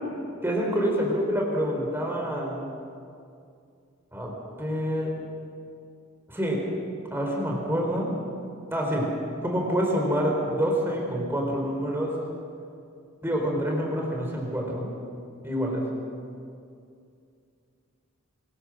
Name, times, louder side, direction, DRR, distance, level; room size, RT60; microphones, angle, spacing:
voice 1, 0.4-2.7 4.1-4.3 4.6-5.1 6.3-6.6 7.1-8.1 8.7-9.1 9.4-12.1 13.2-14.9 15.4-15.8, equal, 10° right, -1 dB, 4.2 m, -27 dB
24.0 x 21.5 x 6.4 m, 2.4 s
head